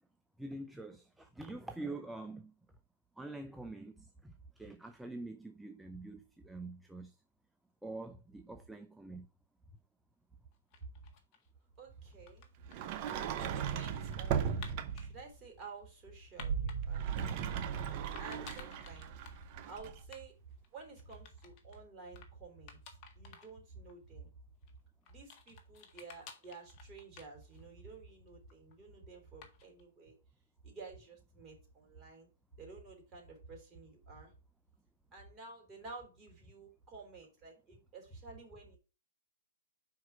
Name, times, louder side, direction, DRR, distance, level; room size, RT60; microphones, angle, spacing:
voice 1, 0.4-2.5 3.2-7.2 7.8-9.3, right 2 dB, 5° right, 0.5 m, -45 dB
sound 1, 10.5-11.5 12.1-15.1 15.6-16.8 17.2-17.8 18.2-19.4 19.7-19.8 20.0-20.2 20.5-21.8 22.2-22.3 22.7-23.5 23.9-24.0 24.6-27.8 28.1-28.7 29.4-29.8, left 7 dB, 35° left, 1.6 m, -54 dB
voice 2, 11.8-12.5 13.4-17.1 18.1-19.2 19.7-20.3 20.7-24.3 25.1-30.2 30.6-32.3 32.6-34.3 35.1-38.8, right 4 dB, 20° right, 3.6 m, -51 dB
Sliding door, 12.7-15.2 16.8-20.0, right 8 dB, 40° right, 0.8 m, -37 dB
sound 2, 16.4-19.4, right 6 dB, 65° right, 2.0 m, -39 dB
5.7 x 4.7 x 5.7 m
hypercardioid pair, 130°, 0 cm